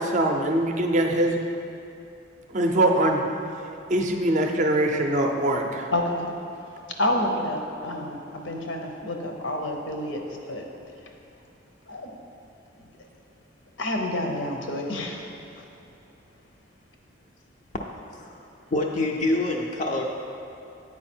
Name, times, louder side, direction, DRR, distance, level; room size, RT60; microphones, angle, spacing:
voice 1, 0.0-1.4 2.5-3.2 3.9-5.9, right 1 dB, 35° right, 3 dB, 0.5 m, -22 dB
voice 2, 5.9-6.3 7.0-10.6 11.9-12.1 13.8-15.3 15.6-15.7, left 1 dB, 70° left, 2 dB, 0.8 m, -29 dB
voice 3, 18.7-20.0, left 2 dB, 40° left, 0 dB, 0.4 m, -26 dB
8.4 x 4.7 x 4.3 m, 2.7 s
head